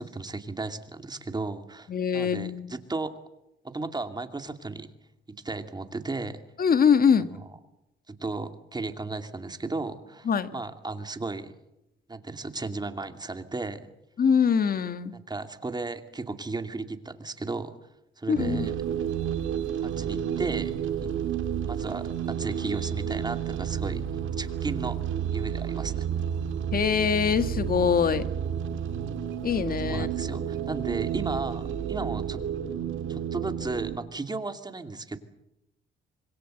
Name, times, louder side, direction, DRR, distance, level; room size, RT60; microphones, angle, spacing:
voice 1, 0.0-3.1 3.6-4.9 5.4-6.4 8.1-11.5 12.1-13.9 15.1-17.7 18.2-18.7 19.8-20.7 21.0-21.1 21.7-24.0 24.4-25.0 25.3-26.1 29.9-32.4 33.1-35.2, right 3 dB, 20° right, 7 dB, 2.5 m, -34 dB
voice 2, 1.9-2.7 6.6-7.3 10.3-10.5 14.2-15.1 18.3-18.7 26.7-28.3 29.4-30.1, left 7 dB, 45° left, 11 dB, 1.8 m, -23 dB
sound 1, 18.3-34.0, right 8 dB, 75° right, 2.5 m, -31 dB
26.0 x 22.0 x 8.0 m, 0.89 s
cardioid pair, 90°, 20 cm